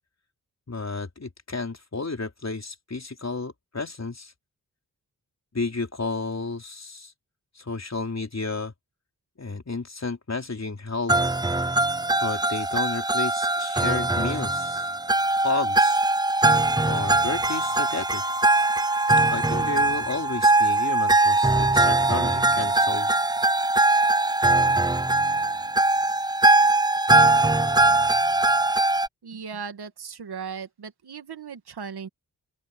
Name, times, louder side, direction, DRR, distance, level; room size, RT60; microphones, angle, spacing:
voice 1, 0.7-4.3 5.5-7.1 7.6-8.7 9.4-11.1 12.2-14.9 15.4-16.0 16.9-18.3 19.3-23.1, left 3 dB, 45° left, 4.1 m, -32 dB
sound 1, 11.1-29.1, right 2 dB, 10° right, 0.7 m, -21 dB
voice 2, 29.2-32.1, right 6 dB, 85° right, 2.2 m, -37 dB
open air
cardioid pair, 50°, 38 cm